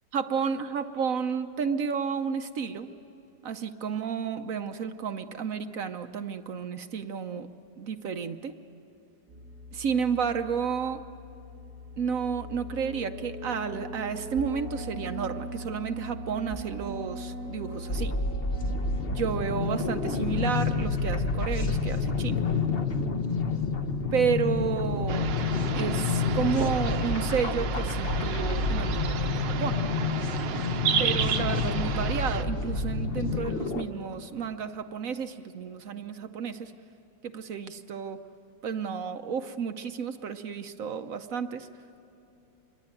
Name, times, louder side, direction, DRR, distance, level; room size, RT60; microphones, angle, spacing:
voice 1, 0.1-2.9 3.4-7.5 7.8-8.5 9.7-11.0 12.0-18.2 19.1-22.4 24.1-25.3 25.7-29.8 31.0-36.7 37.2-38.2 38.6-41.7, right 6 dB, 60° right, 8 dB, 1.0 m, -31 dB
sound 1, 9.3-22.1, equal, 35° right, 4.4 m, -40 dB
sound 2, 17.9-33.8, left 4 dB, 40° left, 1.0 m, -29 dB
sound 3, 25.1-32.4, right 8 dB, 75° right, 1.6 m, -32 dB
26.5 x 22.5 x 9.0 m, 2.9 s
omnidirectional pair, 2.0 m